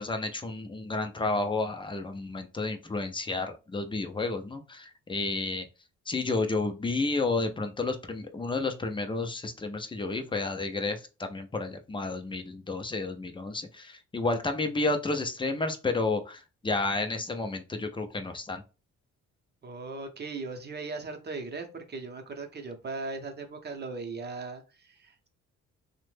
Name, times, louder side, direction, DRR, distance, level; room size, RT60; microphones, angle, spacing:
voice 1, 0.0-5.6 6.1-18.6, left 3 dB, 15° left, 0.5 m, -31 dB
voice 2, 19.6-25.3, right 3 dB, 35° right, 0.7 m, -38 dB
3.0 x 2.1 x 3.2 m
cardioid pair, 90°, 30 cm